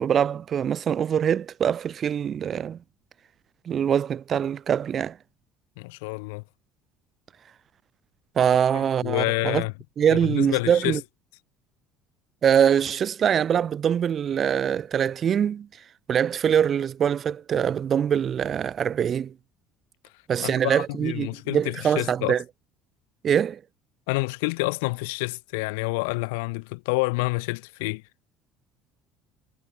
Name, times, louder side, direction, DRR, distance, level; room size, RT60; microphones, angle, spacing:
voice 1, 0.0-2.8 3.7-5.2 8.4-9.6 10.0-11.0 12.4-15.7 16.1-19.3 20.3-22.4 23.2-23.6, right 8 dB, 45° right, 1.2 m, -23 dB
voice 2, 5.8-6.4 9.0-9.7 10.1-11.0 20.4-22.3 24.1-28.0, left 28 dB, 80° left, 2.5 m, -28 dB
hypercardioid pair, 75°, 0 cm